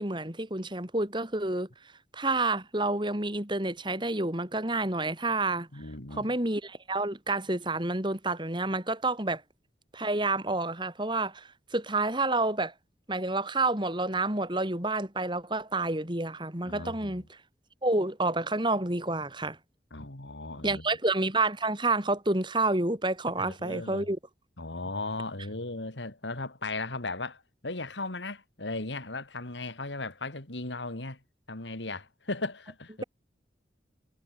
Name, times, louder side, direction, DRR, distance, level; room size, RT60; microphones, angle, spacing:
voice 1, 0.0-1.7 2.1-5.7 6.2-9.4 9.9-12.7 13.1-17.2 17.8-19.6 20.6-24.2, right 2 dB, 25° right, 3.8 m, -29 dB
voice 2, 5.7-6.4 16.6-17.2 19.9-20.9 23.4-24.1 24.6-31.2 31.5-33.0, left 2 dB, 85° left, 3.2 m, -37 dB
head